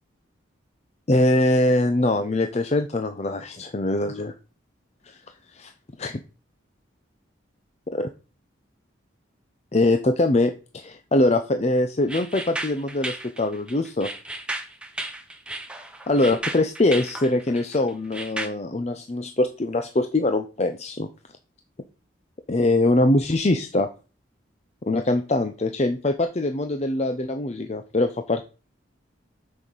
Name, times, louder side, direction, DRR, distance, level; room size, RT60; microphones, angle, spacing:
voice 1, 1.1-4.3 5.1-5.2 5.5-5.7 6.0-6.2 7.9-8.1 9.7-14.1 16.1-21.1 22.5-23.9 24.9-28.4, left 2 dB, 35° left, 7 dB, 0.6 m, -23 dB
sound 1, 12.1-18.5, right 1 dB, 5° right, 0.9 m, -34 dB
6.1 x 5.8 x 6.9 m, 0.34 s
head